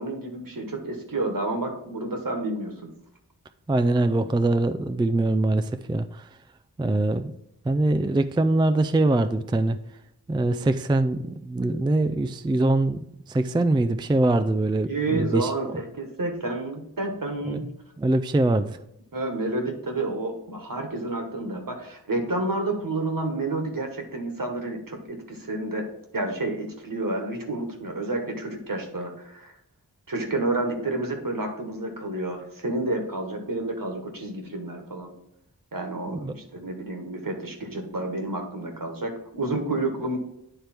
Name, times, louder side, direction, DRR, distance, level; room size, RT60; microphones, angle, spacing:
voice 1, 0.0-2.9 8.3-8.4 14.8-17.7 19.1-25.9 26.1-29.5 30.1-35.1 35.7-40.2, right 2 dB, 60° right, 3 dB, 1.5 m, -30 dB
voice 2, 3.7-6.2 6.8-7.3 7.7-9.8 10.3-13.0 13.3-15.5 17.4-17.6 18.0-18.8 36.1-36.3, right 2 dB, 15° right, 9 dB, 0.4 m, -23 dB
9.4 x 3.4 x 4.4 m, 0.80 s
wide cardioid pair, 45°, 38 cm